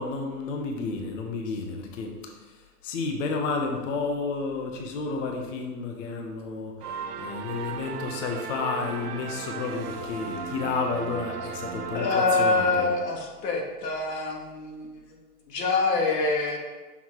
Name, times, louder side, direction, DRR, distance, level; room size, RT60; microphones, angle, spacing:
voice 1, 0.0-2.1 2.8-6.7 7.2-12.9, left 4 dB, 50° left, 2 dB, 1.0 m, -31 dB
sound 1, 6.8-13.4, right 6 dB, 70° right, 0.8 m, -36 dB
voice 2, 11.9-15.0 15.5-16.6, left 3 dB, 80° left, 0 dB, 1.6 m, -25 dB
6.1 x 4.1 x 4.6 m, 1.3 s
hypercardioid pair, 150°, 48 cm